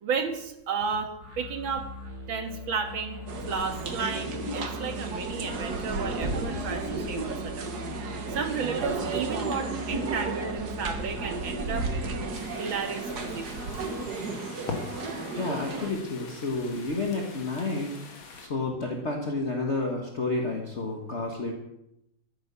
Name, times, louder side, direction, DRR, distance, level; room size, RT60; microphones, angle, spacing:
voice 1, 0.0-1.9 2.3-7.7 8.3-13.7, right 5 dB, 75° right, 6 dB, 2.4 m, -33 dB
sound 1, 1.2-12.1, left 2 dB, 40° right, 5.8 m, -41 dB
sound 2, 3.3-15.9, right 3 dB, 55° right, 1.9 m, -33 dB
sound 3, 12.3-18.5, left 4 dB, 75° left, 2.6 m, -42 dB
voice 2, 15.4-17.9 18.4-21.5, left 3 dB, 35° left, 1 dB, 1.7 m, -30 dB
14.0 x 9.9 x 6.9 m, 0.83 s
omnidirectional pair, 2.2 m